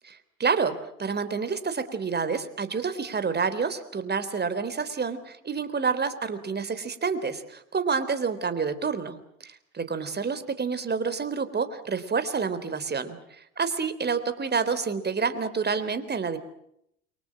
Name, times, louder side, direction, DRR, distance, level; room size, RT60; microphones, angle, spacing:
voice 1, 0.0-16.4, right 5 dB, 25° right, 12 dB, 3.8 m, -28 dB
29.0 x 24.5 x 6.2 m, 0.73 s
hypercardioid pair, 70°, 37 cm